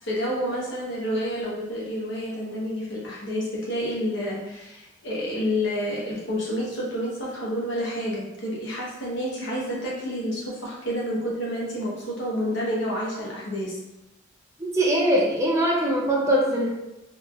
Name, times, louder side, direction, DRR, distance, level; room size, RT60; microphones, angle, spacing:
voice 1, 0.0-13.8, equal, 60° left, -5 dB, 1.0 m, -29 dB
voice 2, 14.6-16.7, right 1 dB, 15° right, -3 dB, 0.5 m, -22 dB
3.1 x 2.8 x 2.4 m, 0.95 s
head